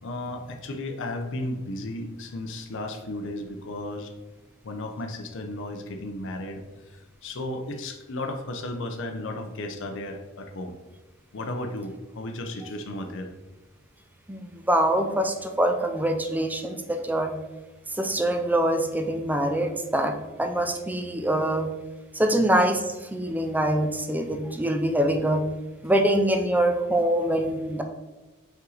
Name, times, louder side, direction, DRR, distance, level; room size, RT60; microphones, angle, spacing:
voice 1, 0.0-4.1 4.6-6.6 6.9-10.8 11.3-13.3, left 1 dB, 65° left, 5 dB, 0.6 m, -34 dB
voice 2, 14.3-17.3 18.0-21.7 22.1-25.4 25.8-27.8, right 1 dB, 10° right, 5 dB, 0.5 m, -24 dB
5.6 x 4.5 x 3.9 m, 1.1 s
head